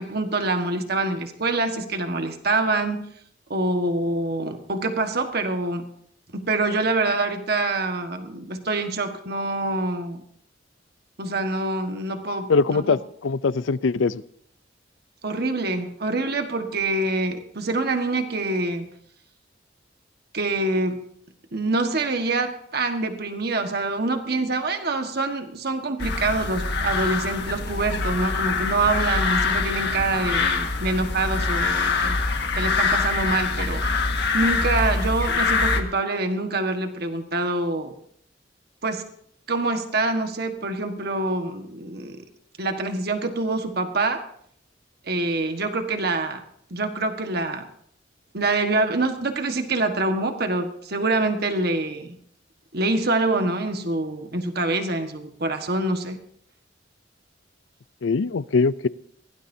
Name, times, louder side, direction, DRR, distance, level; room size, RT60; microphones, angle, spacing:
voice 1, 0.0-3.1 3.5-5.9 6.3-10.2 11.2-13.0 15.2-18.9 20.3-21.0 21.5-32.2 32.6-33.8 34.3-37.9 38.8-39.1 39.5-42.2 42.6-44.2 45.0-46.4 46.7-47.7 48.3-52.2 52.7-56.2, right 2 dB, 55° right, 6 dB, 1.5 m, -25 dB
voice 2, 12.5-14.2 58.0-58.9, left 4 dB, 85° left, 17 dB, 0.5 m, -22 dB
sound 1, 26.0-35.8, left 4 dB, 60° left, 1.7 m, -24 dB
22.0 x 17.0 x 2.8 m, 0.66 s
head